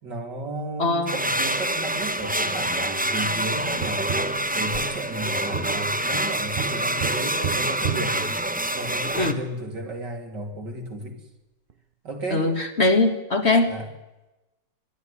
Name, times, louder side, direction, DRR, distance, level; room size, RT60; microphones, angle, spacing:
voice 1, 0.0-4.2 4.5-8.3 8.7-11.2 12.0-12.5 13.7-13.9, right 2 dB, 75° right, 2 dB, 3.7 m, -33 dB
voice 2, 0.8-1.1 9.2-9.4 12.3-13.7, left 2 dB, 40° left, 6 dB, 1.8 m, -21 dB
sound 1, 1.1-9.3, right 1 dB, 5° right, 0.8 m, -26 dB
Tap, 3.8-9.1 11.7-11.8, right 7 dB, 45° right, 0.7 m, -34 dB
22.5 x 12.0 x 9.9 m, 1.0 s
omnidirectional pair, 1.9 m